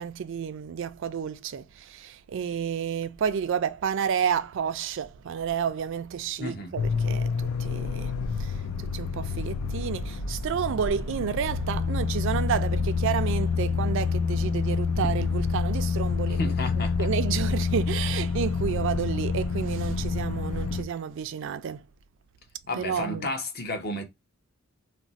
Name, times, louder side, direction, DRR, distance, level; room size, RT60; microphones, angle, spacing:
voice 1, 0.0-8.1 8.4-8.5 8.9-16.5 17.0-21.8 22.8-23.3, right 7 dB, 60° right, 0.3 m, -30 dB
voice 2, 6.4-6.7 16.3-17.1 22.7-24.0, left 2 dB, 45° left, 0.7 m, -32 dB
sound 1, 6.8-20.8, left 5 dB, 85° left, 0.4 m, -28 dB
2.5 x 2.0 x 3.9 m
head